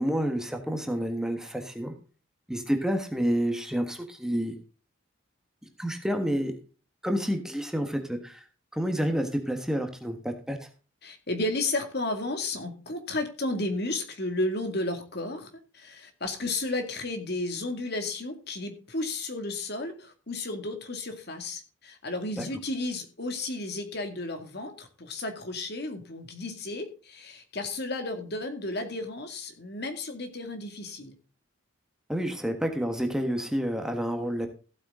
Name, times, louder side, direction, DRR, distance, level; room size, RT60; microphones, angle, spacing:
voice 1, 0.0-1.9 2.5-4.5 5.8-6.5 7.0-8.4 8.7-10.7 22.4-22.5 32.1-34.5, equal, 5° right, 4 dB, 1.4 m, -29 dB
voice 2, 11.0-31.1, left 2 dB, 55° left, 7 dB, 2.2 m, -33 dB
15.0 x 8.4 x 3.7 m, 0.36 s
head